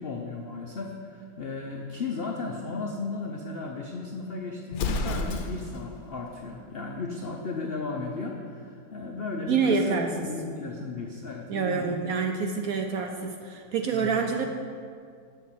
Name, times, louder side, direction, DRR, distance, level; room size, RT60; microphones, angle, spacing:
voice 1, 0.0-11.9 13.9-14.3, left 3 dB, 80° left, 1 dB, 0.5 m, -35 dB
Explosion, 4.7-5.9, left 3 dB, 65° left, 1.0 m, -30 dB
voice 2, 9.5-10.3 11.5-14.4, right 5 dB, 70° right, 4 dB, 0.8 m, -27 dB
6.9 x 6.5 x 7.2 m, 2.3 s
omnidirectional pair, 2.0 m